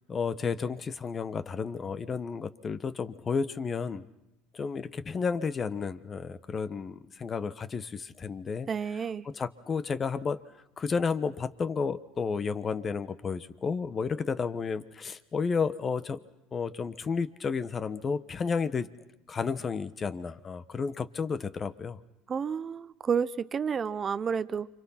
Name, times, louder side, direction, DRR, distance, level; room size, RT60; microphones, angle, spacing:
voice 1, 0.1-4.1 4.5-8.7 9.2-10.4 10.8-16.2 16.5-18.9 19.3-22.0, left 5 dB, 30° left, 14 dB, 1.2 m, -32 dB
voice 2, 8.7-9.3 22.3-24.7, right 6 dB, 30° right, 15 dB, 0.9 m, -30 dB
29.5 x 25.5 x 5.9 m, 0.90 s
supercardioid pair, 90°, 0 cm